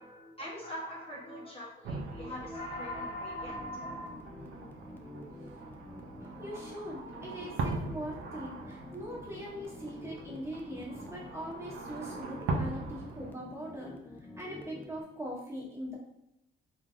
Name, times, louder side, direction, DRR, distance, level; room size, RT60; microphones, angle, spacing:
voice 1, 0.0-4.1, left 1 dB, 30° left, -4 dB, 0.8 m, -41 dB
sound 1, 1.8-13.3, right 3 dB, 80° right, 0.5 m, -41 dB
sound 2, 3.5-15.0, left 1 dB, 10° left, 0.3 m, -48 dB
voice 2, 6.2-13.9 14.4-16.0, equal, 15° right, -4 dB, 1.0 m, -41 dB
3.1 x 2.4 x 2.4 m, 0.84 s
cardioid pair, 90°, 20 cm